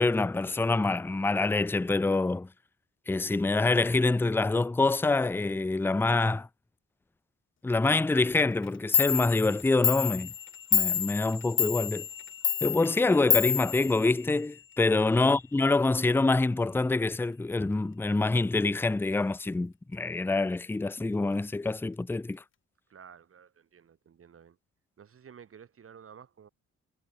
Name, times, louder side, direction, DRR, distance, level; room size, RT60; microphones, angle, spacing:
voice 1, 0.0-2.5 3.1-6.5 7.6-10.3 10.7-12.1 12.6-22.4, left 3 dB, 5° left, 0.6 m, -26 dB
Clock, 8.6-8.7 8.9-14.6, left 9 dB, 40° left, 0.8 m, -29 dB
voice 2, 22.9-24.6 25.0-26.5, right 7 dB, 45° right, 2.2 m, -52 dB
cardioid pair, 90°, 30 cm